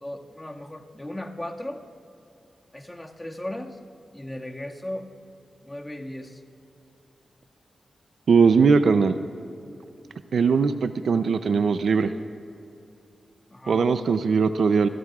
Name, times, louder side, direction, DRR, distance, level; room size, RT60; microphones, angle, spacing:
voice 1, 0.0-1.8 2.7-3.8 4.1-5.1 5.6-6.4 13.5-13.9, left 1 dB, 20° left, 1 dB, 1.8 m, -36 dB
voice 2, 8.3-9.2 10.3-12.1 13.7-14.9, right 5 dB, 75° right, 11 dB, 0.5 m, -20 dB
29.0 x 16.0 x 2.4 m, 2.7 s
cardioid pair, 50°, 0 cm